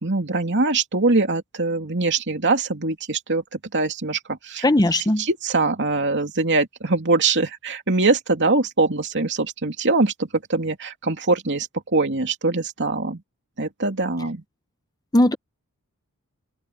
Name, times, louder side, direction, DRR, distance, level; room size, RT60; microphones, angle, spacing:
voice 1, 0.0-4.6 5.2-13.2 13.6-14.4, right 3 dB, 55° right, 2.9 m, -23 dB
voice 2, 4.6-5.2 15.1-15.4, left 1 dB, 15° left, 0.8 m, -18 dB
open air
head